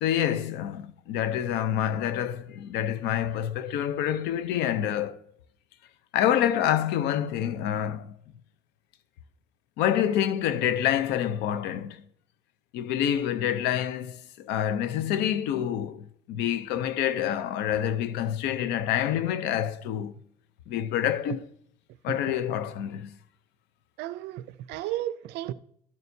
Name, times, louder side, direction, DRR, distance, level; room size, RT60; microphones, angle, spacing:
voice 1, 0.0-5.2 6.1-8.1 9.8-12.0 12.7-20.1 20.7-21.5 22.0-23.1, left 10 dB, 90° left, 0.7 m, -27 dB
voice 2, 24.0-25.5, right 14 dB, 90° right, 0.4 m, -33 dB
12.5 x 9.4 x 2.7 m
cardioid pair, 110°, 17 cm